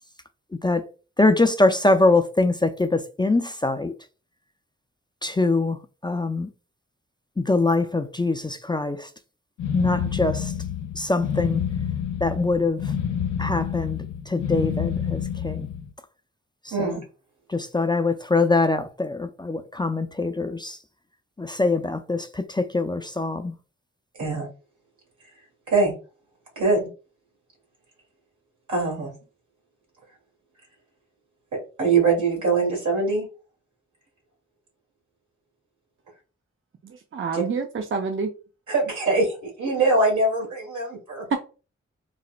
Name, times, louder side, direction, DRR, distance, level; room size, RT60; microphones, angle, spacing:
voice 1, 1.2-3.9 5.2-5.8 6.0-6.5 7.4-9.1 9.7-10.5 11.0-11.6 12.2-12.9 13.4-15.7 16.7-16.9 17.5-20.8 21.4-23.5, left 2 dB, 15° left, 0.4 m, -23 dB
sound 1, 9.6-15.9, left 8 dB, 85° left, 0.5 m, -28 dB
voice 2, 26.5-26.9 28.7-29.1 31.5-33.3 37.3-37.4 38.7-41.2, right 3 dB, 80° right, 1.7 m, -23 dB
voice 3, 36.8-38.3 41.3-41.4, right 4 dB, 45° right, 0.5 m, -27 dB
4.0 x 2.1 x 2.4 m
cardioid pair, 45°, 29 cm